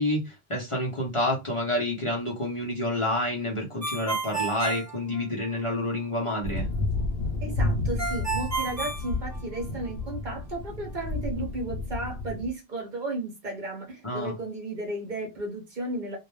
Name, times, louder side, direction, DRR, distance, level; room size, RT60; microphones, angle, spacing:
voice 1, 0.0-6.7 14.0-14.3, left 1 dB, 35° left, 0.6 m, -28 dB
Ringtone, 3.8-5.7 8.0-9.9, right 3 dB, 25° right, 0.4 m, -31 dB
sound 1, 6.4-12.5, left 2 dB, 70° left, 0.7 m, -31 dB
voice 2, 7.4-16.2, right 2 dB, 50° right, 0.9 m, -34 dB
2.1 x 2.1 x 3.0 m
omnidirectional pair, 1.0 m